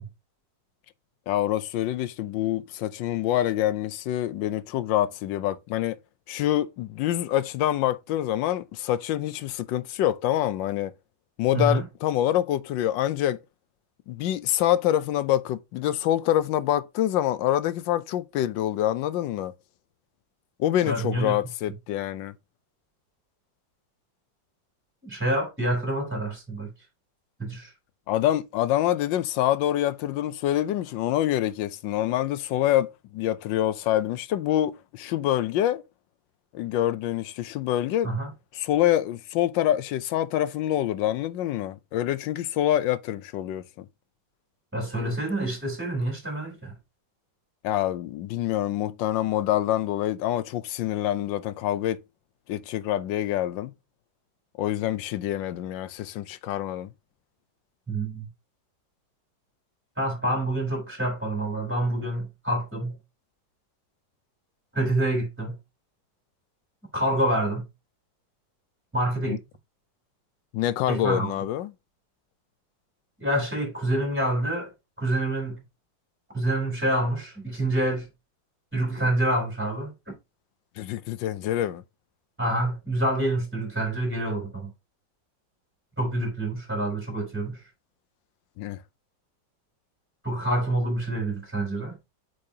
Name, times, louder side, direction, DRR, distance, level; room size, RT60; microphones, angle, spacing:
voice 1, 1.3-6.0 6.3-10.9 11.4-13.4 14.1-19.5 20.6-22.3 28.1-35.8 36.5-38.1 38.5-43.9 47.6-52.0 52.5-53.7 54.6-56.9 69.3-69.4 70.5-71.7 80.8-81.8 88.6-88.8, left 12 dB, 80° left, 1.3 m, -26 dB
voice 2, 11.5-11.8 20.8-21.4 25.0-26.7 27.4-27.7 38.0-38.3 44.7-46.7 57.9-58.2 60.0-63.0 64.7-65.6 66.9-67.7 68.9-69.4 70.9-71.3 73.2-74.7 75.0-75.6 76.3-78.1 78.7-80.1 82.4-84.7 86.0-87.6 90.2-92.0, right 1 dB, 5° right, 3.4 m, -27 dB
8.5 x 4.8 x 2.8 m
omnidirectional pair, 2.0 m